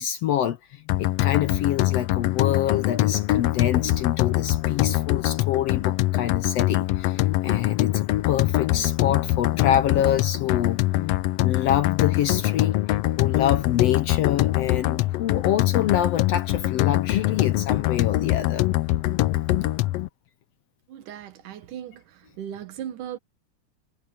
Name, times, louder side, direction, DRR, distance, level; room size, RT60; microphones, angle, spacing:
voice 1, 0.0-10.8 11.4-12.8 13.2-18.7, left 10 dB, 70° left, 1.6 m, -26 dB
sound 1, 0.9-20.1, left 16 dB, 90° left, 1.4 m, -23 dB
voice 2, 20.9-22.0 22.4-23.2, right 10 dB, 90° right, 2.9 m, -37 dB
omnidirectional pair, 3.6 m